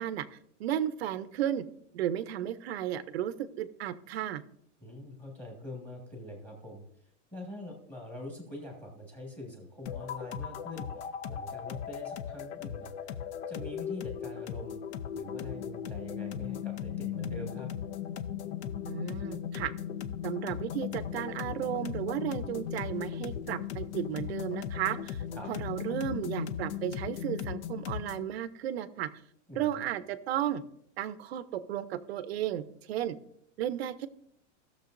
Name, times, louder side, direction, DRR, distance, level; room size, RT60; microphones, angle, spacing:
voice 1, 0.0-1.6 1.9-4.4 18.9-19.7 20.2-25.2 25.5-29.1 29.5-30.6 31.0-33.2 33.6-34.1, right 11 dB, 55° right, 14 dB, 0.6 m, -34 dB
voice 2, 4.8-6.8 7.3-12.9 13.5-14.8 15.1-17.7 25.3-25.5 29.5-29.8, left 1 dB, 5° left, 0 dB, 1.6 m, -44 dB
sound 1, 9.9-28.3, left 9 dB, 65° left, 0.7 m, -37 dB
sound 2, 20.7-27.2, equal, 30° left, 1.2 m, -54 dB
16.5 x 6.7 x 2.6 m, 0.72 s
supercardioid pair, 180°, 36 cm